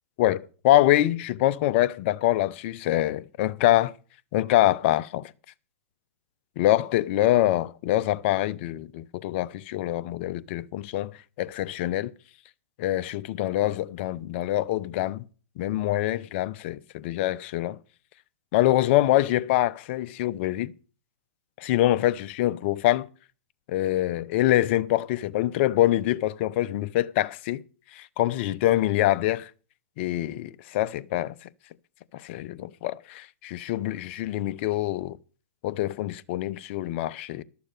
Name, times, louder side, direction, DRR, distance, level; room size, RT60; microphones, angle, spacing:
voice 1, 0.2-3.9 4.3-5.3 6.6-12.1 12.8-15.2 15.6-17.8 18.5-20.7 21.6-23.1 23.7-27.6 27.9-29.5 30.0-31.5 32.1-35.2 35.6-37.4, left 14 dB, 50° left, 0.7 m, -25 dB
12.5 x 7.0 x 6.6 m
hypercardioid pair, 125°, 8 cm